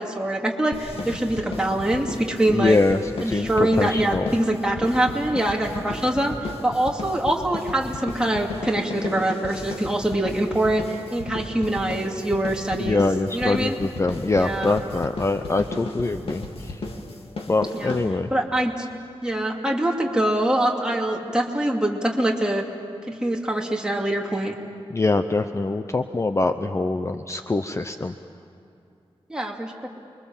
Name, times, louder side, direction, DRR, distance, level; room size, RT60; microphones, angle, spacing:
voice 1, 0.0-2.8 3.2-13.0 13.3-13.8 14.4-14.7 17.7-17.9 18.3-18.9 19.2-22.7 23.1-24.5 29.3-29.9, right 1 dB, 10° right, 0 dB, 2.6 m, -24 dB
sound 1, 0.7-18.5, left 2 dB, 75° left, 2.5 m, -35 dB
voice 2, 2.5-4.3 12.8-16.8 17.5-18.3 24.9-28.1, left 3 dB, 30° left, 8 dB, 0.7 m, -24 dB
29.0 x 23.0 x 7.4 m, 2.6 s
wide cardioid pair, 125°, 10 cm